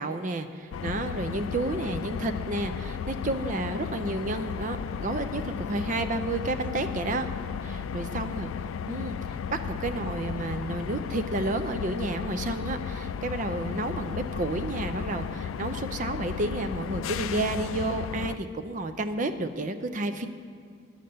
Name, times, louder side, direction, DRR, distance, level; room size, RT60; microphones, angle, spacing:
voice 1, 0.0-7.3 7.6-8.5 8.9-20.3, right 2 dB, 40° right, 9 dB, 0.5 m, -31 dB
sound 1, 0.7-18.4, left 7 dB, 90° left, 0.3 m, -34 dB
11.0 x 6.5 x 6.7 m, 2.1 s
head